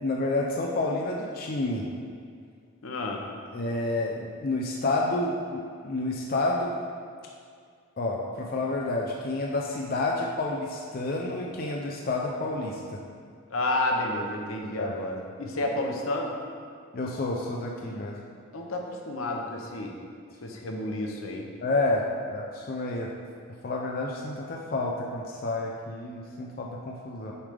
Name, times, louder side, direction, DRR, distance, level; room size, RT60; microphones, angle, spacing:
voice 1, 0.0-1.9 3.5-6.8 8.0-13.0 14.8-14.9 16.9-18.1 21.6-23.1 23.6-27.3, left 2 dB, 45° left, -1 dB, 0.5 m, -29 dB
voice 2, 2.8-3.3 13.5-16.3 18.5-19.9 20.4-21.5, left 2 dB, 80° left, 1 dB, 0.8 m, -30 dB
7.1 x 3.3 x 5.0 m, 2.1 s
head